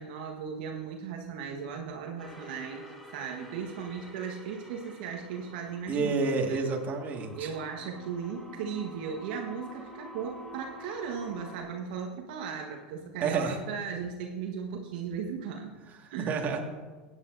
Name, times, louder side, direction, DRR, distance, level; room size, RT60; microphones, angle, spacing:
voice 1, 0.0-2.8 3.1-6.2 6.5-6.7 7.4-15.7 16.1-16.4, right 6 dB, 65° right, 2 dB, 1.3 m, -37 dB
sound 1, 2.2-11.6, equal, 5° left, 2.3 m, -48 dB
voice 2, 5.9-7.5 13.2-13.6 16.0-16.6, right 4 dB, 35° right, 2 dB, 1.8 m, -29 dB
16.0 x 9.5 x 2.6 m, 1.4 s
hypercardioid pair, 100°, 5 cm